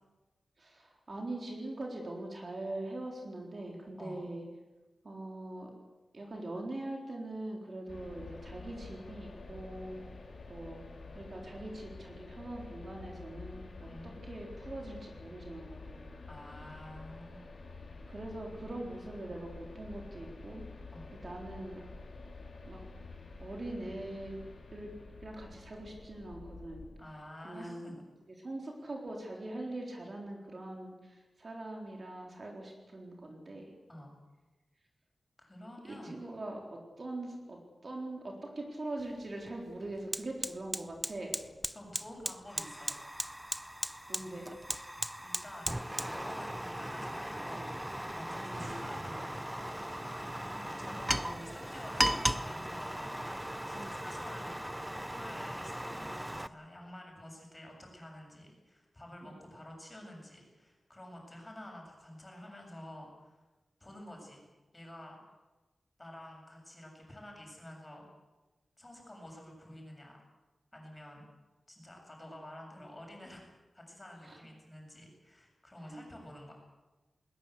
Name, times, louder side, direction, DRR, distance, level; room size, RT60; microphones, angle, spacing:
voice 1, 0.6-4.4 5.0-5.7 6.1-10.0 10.5-10.8 11.1-16.1 18.1-20.7 21.1-21.8 22.6-22.8 23.4-24.4 24.7-24.9 25.2-26.9 27.4-28.0 28.4-33.7 35.9-41.4 44.1-44.5 48.4-48.6 50.8-51.2 53.7-54.0 59.2-59.3 74.2-74.4 75.8-76.1, right 2 dB, 40° right, 0 dB, 4.0 m, -42 dB
sound 1, 7.9-26.9, left 3 dB, 70° left, 4.4 m, -49 dB
voice 2, 13.9-14.2 16.3-17.4 20.9-21.1 27.0-28.0 33.9-34.1 35.4-36.2 41.7-43.0 45.2-45.8 46.1-47.7 48.1-49.5 50.3-53.0 53.7-54.6 55.0-63.4 63.8-64.4 64.7-65.2 66.0-68.1 68.8-70.2 70.7-71.3 71.7-73.5 73.7-76.5, left 1 dB, 20° left, 1 dB, 7.4 m, -49 dB
Fire, 39.0-39.1 39.5-56.5, equal, 5° right, 0.7 m, -37 dB
Explosion, 48.5-50.7, right 1 dB, 65° right, 6.0 m, -49 dB
21.0 x 20.5 x 8.0 m, 1.2 s
wide cardioid pair, 135°, 0 cm